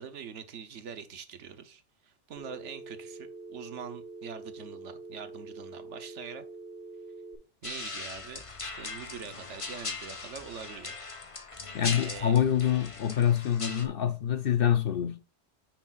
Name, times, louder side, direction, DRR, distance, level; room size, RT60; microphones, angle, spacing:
voice 1, 0.0-6.4 7.6-11.0 12.0-12.3, right 6 dB, 75° right, 1.2 m, -44 dB
Telephone, 2.4-7.4, right 3 dB, 30° right, 3.6 m, -45 dB
sound 1, 7.6-13.9, left 3 dB, 30° left, 1.0 m, -39 dB
voice 2, 11.7-15.2, left 9 dB, 55° left, 0.8 m, -26 dB
9.5 x 6.9 x 2.4 m
omnidirectional pair, 1.3 m